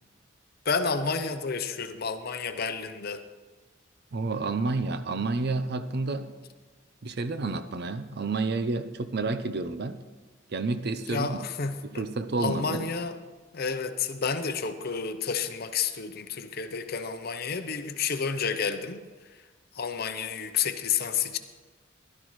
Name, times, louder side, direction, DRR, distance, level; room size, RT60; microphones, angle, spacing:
voice 1, 0.7-3.2 11.1-12.0 12.4-13.2 13.5-19.0 19.7-21.4, left 5 dB, 50° left, 9 dB, 0.7 m, -30 dB
voice 2, 4.1-6.3 7.0-10.0 10.5-11.5 11.8-12.9, right 3 dB, 55° right, 11 dB, 0.6 m, -30 dB
16.0 x 12.0 x 3.1 m, 1.3 s
head